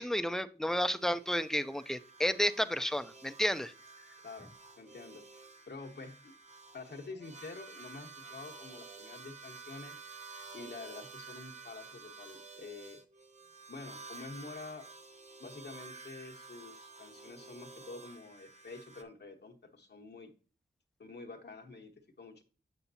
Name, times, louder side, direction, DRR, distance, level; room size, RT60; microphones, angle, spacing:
voice 1, 0.0-3.7, equal, ahead, 10 dB, 0.5 m, -31 dB
sound 1, 0.8-19.0, right 4 dB, 40° right, 0.9 m, -51 dB
voice 2, 4.2-6.3 6.7-10.0 10.5-13.0 13.7-14.9 15.4-20.3 21.0-22.4, left 3 dB, 65° left, 2 dB, 1.1 m, -48 dB
7.1 x 7.0 x 2.7 m, 0.37 s
wide cardioid pair, 75°, 19 cm